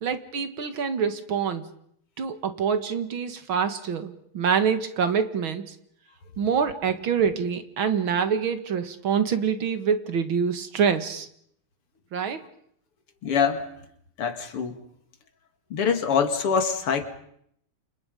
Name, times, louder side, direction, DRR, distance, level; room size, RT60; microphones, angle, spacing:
voice 1, 0.0-1.7 2.2-5.8 6.4-11.3 12.1-12.4, right 6 dB, 65° right, 9 dB, 2.5 m, -26 dB
voice 2, 13.2-13.7 14.2-14.8 15.7-17.0, left 6 dB, 85° left, 7 dB, 3.1 m, -24 dB
29.5 x 27.0 x 5.4 m, 0.70 s
omnidirectional pair, 2.4 m